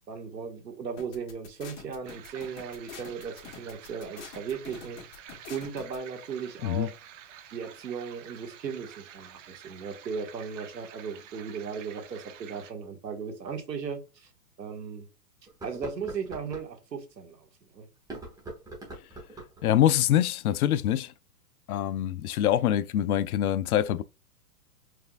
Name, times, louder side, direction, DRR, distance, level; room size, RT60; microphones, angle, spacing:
voice 1, 0.0-5.0 5.5-6.9 7.5-14.3 14.6-15.1 15.6-17.9, right 6 dB, 90° right, 1.5 m, -37 dB
sound 1, 1.0-6.0, left 6 dB, 45° left, 1.5 m, -45 dB
sound 2, 2.0-12.7, right 9 dB, 50° right, 0.7 m, -49 dB
sound 3, 13.5-13.6 14.2-14.3 15.5-16.7 18.0-19.6, right 2 dB, 5° right, 1.1 m, -42 dB
voice 2, 19.6-21.1 21.7-24.0, left 11 dB, 65° left, 0.5 m, -24 dB
4.6 x 3.4 x 2.3 m
hypercardioid pair, 130°, 49 cm